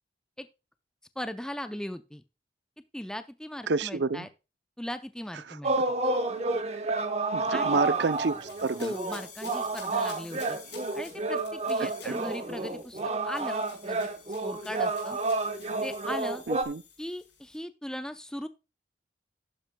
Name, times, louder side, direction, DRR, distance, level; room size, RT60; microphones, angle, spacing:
voice 1, 1.2-2.2 2.9-4.3 4.8-5.7 7.5-7.8 8.8-10.6 10.9-13.0 13.2-14.1 14.4-15.2 15.8-16.4 17.0-18.5, left 1 dB, 5° left, 0.5 m, -38 dB
voice 2, 3.7-4.3 5.5-5.6 7.3-8.9 11.8-12.2 16.5-16.8, right 3 dB, 70° right, 0.6 m, -29 dB
sound 1, 5.6-16.6, right 3 dB, 35° right, 0.9 m, -30 dB
sound 2, 7.6-17.6, left 7 dB, 80° left, 5.2 m, -51 dB
12.0 x 9.8 x 2.2 m
head